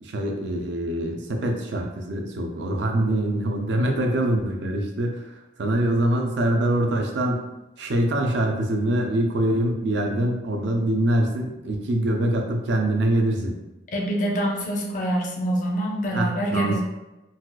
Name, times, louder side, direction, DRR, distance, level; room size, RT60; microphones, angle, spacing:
voice 1, 0.0-7.5 7.8-13.5 16.1-16.8, right 1 dB, 70° right, 2 dB, 0.5 m, -24 dB
voice 2, 13.9-16.8, right 1 dB, 45° left, -1 dB, 0.6 m, -25 dB
4.1 x 2.3 x 2.3 m, 0.99 s
head